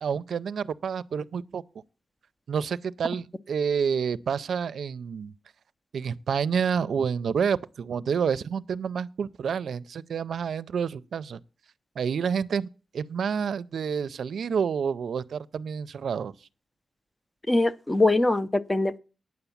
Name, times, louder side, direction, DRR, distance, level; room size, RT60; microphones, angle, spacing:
voice 1, 0.0-1.6 2.5-5.3 5.9-11.4 12.0-12.7 12.9-16.3, right 6 dB, 80° right, 0.4 m, -28 dB
voice 2, 17.5-19.0, left 2 dB, 15° left, 0.5 m, -22 dB
9.6 x 6.9 x 7.1 m
wide cardioid pair, 125°, 0 cm